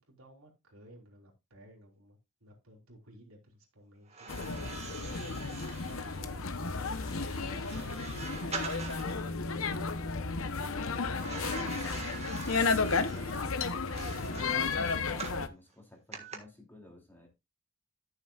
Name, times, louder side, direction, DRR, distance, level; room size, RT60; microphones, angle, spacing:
voice 1, 0.0-6.4 7.1-9.7, right 1 dB, 80° right, 3.6 m, -56 dB
sound 1, 4.1-9.2 11.2-15.5 16.1-16.4, right 5 dB, 30° right, 1.7 m, -44 dB
sound 2, 4.3-15.5, left 4 dB, 70° left, 0.9 m, -33 dB
voice 2, 10.5-12.1 14.3-17.3, left 2 dB, 10° left, 2.6 m, -53 dB
13.5 x 6.8 x 2.4 m
head